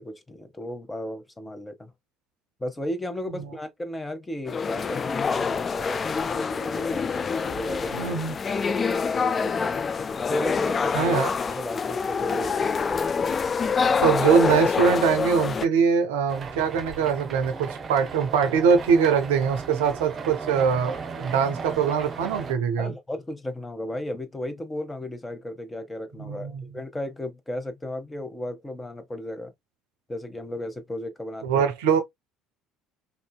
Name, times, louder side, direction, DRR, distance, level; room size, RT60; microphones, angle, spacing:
voice 1, 0.0-1.9 2.6-8.1 8.5-9.9 10.3-11.1 11.5-13.1 22.8-29.5 30.1-31.6, left 1 dB, 15° left, 0.9 m, -34 dB
sound 1, 4.5-15.7, left 5 dB, 35° left, 0.3 m, -26 dB
voice 2, 7.9-8.4 10.9-11.3 14.0-22.9 26.2-26.6 31.4-32.0, right 6 dB, 75° right, 0.5 m, -22 dB
sound 2, 16.3-22.5, right 4 dB, 40° right, 0.7 m, -36 dB
3.6 x 2.7 x 2.2 m
hypercardioid pair, 65°, 0 cm